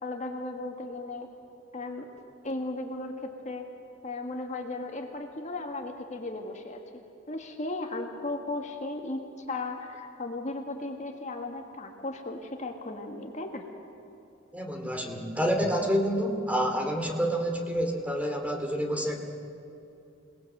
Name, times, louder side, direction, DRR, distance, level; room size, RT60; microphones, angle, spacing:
voice 1, 0.0-1.3 1.7-2.1 2.4-3.7 4.0-6.8 7.3-13.6, left 2 dB, 35° left, 3 dB, 1.7 m, -36 dB
voice 2, 14.5-19.2, equal, 5° right, 3 dB, 2.4 m, -28 dB
28.0 x 19.0 x 7.9 m, 2.7 s
head